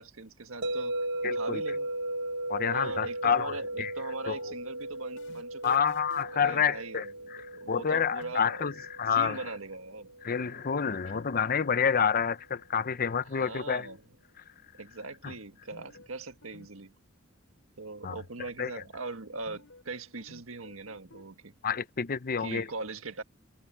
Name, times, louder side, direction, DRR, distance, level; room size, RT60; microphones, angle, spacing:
voice 1, 0.0-1.9 2.7-5.8 6.3-8.7 9.1-10.2 13.2-14.0 14.8-16.9 17.8-21.5 22.4-23.2, right 3 dB, 85° right, 1.7 m, -41 dB
sound 1, 0.6-10.7, right 1 dB, 60° right, 1.2 m, -37 dB
voice 2, 1.2-1.6 2.5-3.9 4.3-4.4 5.6-7.1 7.3-9.4 10.2-13.9 15.2-15.3 18.0-18.2 18.6-18.7 21.6-22.7, left 7 dB, 45° left, 0.7 m, -28 dB
sound 2, 4.8-6.5 8.2-8.6 11.0-11.3 11.5-11.6 13.4-14.2 15.7-16.1 16.4-16.7 16.9-17.0 19.5-19.9 20.2-21.2, left 2 dB, 70° left, 7.3 m, -53 dB
open air
head